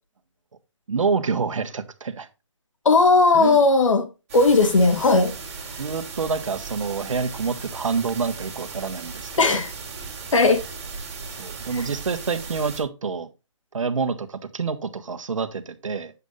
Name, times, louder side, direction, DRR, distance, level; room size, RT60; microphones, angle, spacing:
voice 1, 0.9-2.3 3.3-3.6 5.8-9.3 11.4-13.3 13.7-16.1, right 5 dB, 80° right, 1.4 m, -27 dB
voice 2, 2.9-5.3 9.4-9.7 10.3-10.6 11.7-11.8, left 3 dB, 80° left, 2.1 m, -17 dB
sound 1, 4.3-12.8, right 4 dB, 30° right, 3.2 m, -37 dB
8.3 x 8.2 x 2.5 m
hypercardioid pair, 170°, 16 cm